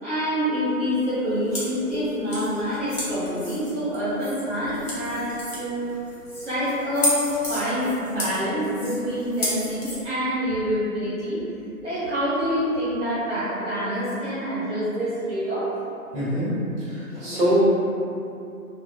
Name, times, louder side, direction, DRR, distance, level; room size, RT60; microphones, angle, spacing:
voice 1, 0.0-5.9 6.4-11.4 11.8-15.7, equal, 50° right, -13 dB, 1.2 m, -26 dB
sound 1, 1.0-10.0, left 1 dB, 40° left, 0.9 m, -33 dB
voice 2, 16.1-17.6, equal, 30° right, -13 dB, 1.2 m, -24 dB
2.5 x 2.2 x 2.3 m, 2.7 s
figure-of-eight pair, 135°, 46 cm